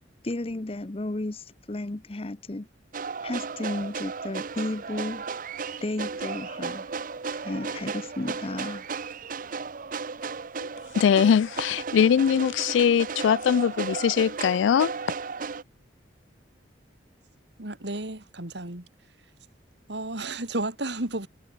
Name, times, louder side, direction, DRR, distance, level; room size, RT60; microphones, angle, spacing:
voice 1, 0.2-2.7 3.2-5.2 5.8-6.9 7.3-8.9, left 2 dB, 30° left, 0.7 m, -33 dB
sound 1, 2.9-15.6, right 5 dB, 45° right, 0.7 m, -34 dB
voice 2, 10.9-14.9, left 7 dB, 80° left, 0.3 m, -21 dB
voice 3, 17.6-18.9 19.9-21.3, right 2 dB, 65° right, 3.0 m, -32 dB
head